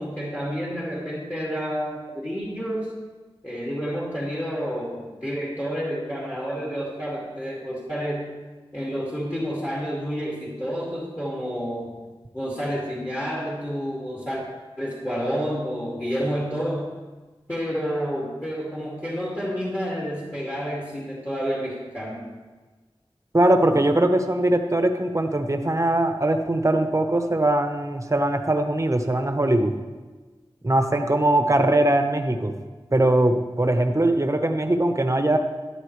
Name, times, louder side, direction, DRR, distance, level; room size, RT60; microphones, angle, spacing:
voice 1, 0.0-2.9 3.4-8.3 8.7-11.9 12.3-14.4 14.8-16.9 17.5-22.3, equal, 20° left, -4 dB, 2.4 m, -29 dB
voice 2, 23.3-29.7 30.6-32.5 32.9-35.4, right 1 dB, 30° right, 6 dB, 1.1 m, -21 dB
13.0 x 11.0 x 3.3 m, 1.3 s
wide cardioid pair, 60°, 10 cm